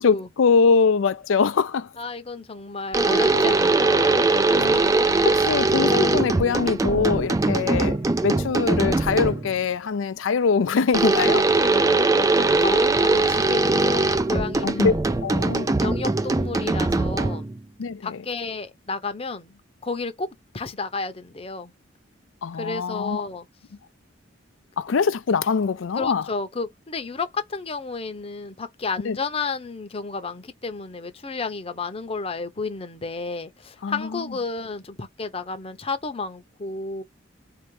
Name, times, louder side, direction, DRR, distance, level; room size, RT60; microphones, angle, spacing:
voice 1, 0.0-1.9 3.2-3.4 4.6-4.9 5.2-8.0 8.2-11.5 14.6-14.9 15.2-15.7 17.8-18.2 22.4-23.2 24.8-26.2 29.1-29.2 33.8-34.2, left 5 dB, 80° left, 0.5 m, -23 dB
voice 2, 2.0-4.8 11.7-12.0 12.4-15.1 15.8-17.5 18.0-20.3 20.5-21.7 22.6-23.5 25.9-37.0, left 4 dB, 30° left, 0.8 m, -32 dB
sound 1, 2.9-9.5 10.9-17.6, right 3 dB, 15° right, 0.3 m, -21 dB
4.3 x 2.8 x 3.1 m
head